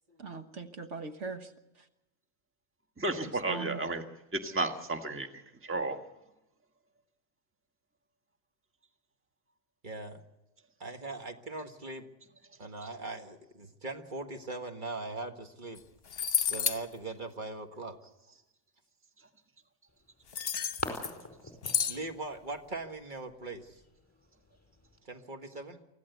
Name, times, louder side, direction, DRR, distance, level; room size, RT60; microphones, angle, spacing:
voice 1, 0.2-1.9 3.5-3.9, right 4 dB, 65° right, 7 dB, 1.6 m, -41 dB
voice 2, 3.0-4.0 4.3-6.0, right 2 dB, 10° right, 5 dB, 1.4 m, -33 dB
voice 3, 9.8-10.2 10.8-12.1 12.6-15.8 16.5-18.0 21.9-23.8 25.1-25.8, right 2 dB, 40° right, 5 dB, 1.8 m, -40 dB
sound 1, 15.8-15.9 16.1-16.8 20.3-21.2 21.6-22.0, left 8 dB, 50° left, 1.2 m, -30 dB
sound 2, 19.9-25.0, left 1 dB, 10° left, 4.8 m, -45 dB
25.0 x 15.5 x 8.1 m, 0.96 s
omnidirectional pair, 1.3 m